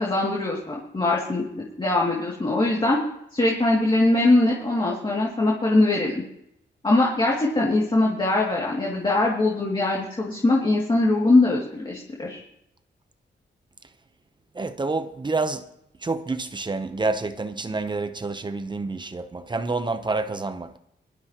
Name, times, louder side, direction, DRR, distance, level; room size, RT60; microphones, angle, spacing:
voice 1, 0.0-3.0 3.3-6.2 6.8-12.4, left 2 dB, 25° left, 2.5 m, -22 dB
voice 2, 14.6-15.6 16.0-20.7, right 3 dB, 25° right, 0.8 m, -28 dB
22.5 x 12.5 x 3.0 m
wide cardioid pair, 150°, 19 cm